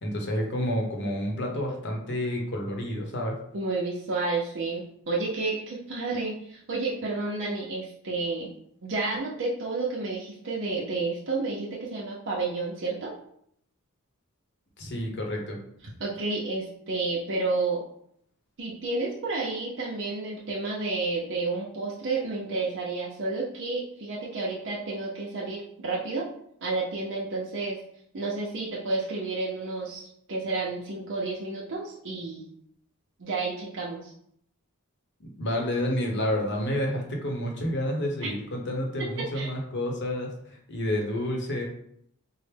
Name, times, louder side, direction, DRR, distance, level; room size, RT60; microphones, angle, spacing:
voice 1, 0.0-3.4 14.8-15.6 35.2-41.6, equal, 55° left, 0 dB, 0.9 m, -29 dB
voice 2, 3.5-8.5 8.8-13.1 16.0-17.8 18.6-26.3 26.6-27.8 28.1-32.5 33.2-34.1 38.2-38.3 39.0-39.5, right 3 dB, 55° right, -5 dB, 0.6 m, -31 dB
4.5 x 2.1 x 3.3 m, 0.70 s
head